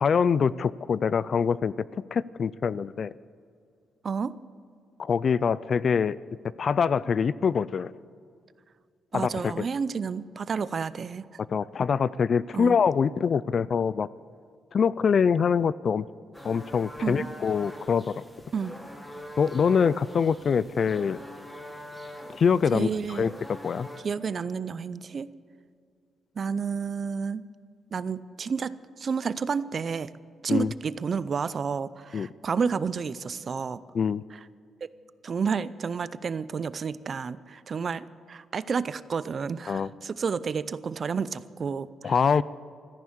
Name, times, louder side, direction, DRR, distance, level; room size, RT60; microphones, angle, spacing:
voice 1, 0.0-3.1 5.0-6.2 6.6-7.9 9.1-9.7 11.5-14.1 14.7-16.1 16.4-18.2 19.4-21.2 22.3-23.3 23.6-23.9 30.5-30.7 32.1-32.3 33.9-34.2 39.7-39.9 42.0-42.4, left 6 dB, 40° left, 19 dB, 0.3 m, -24 dB
voice 2, 4.0-4.4 9.1-11.3 12.5-12.8 17.0-17.3 18.5-18.8 22.7-23.3 24.0-25.3 26.4-27.4 27.9-28.7 29.0-30.1 30.4-33.8 34.3-34.4 34.8-34.9 35.2-42.1, right 5 dB, 35° right, 17 dB, 0.4 m, -30 dB
sound 1, 16.3-24.0, equal, 10° left, 1.5 m, -43 dB
14.0 x 11.0 x 8.6 m, 2.2 s
cardioid pair, 165°, 0 cm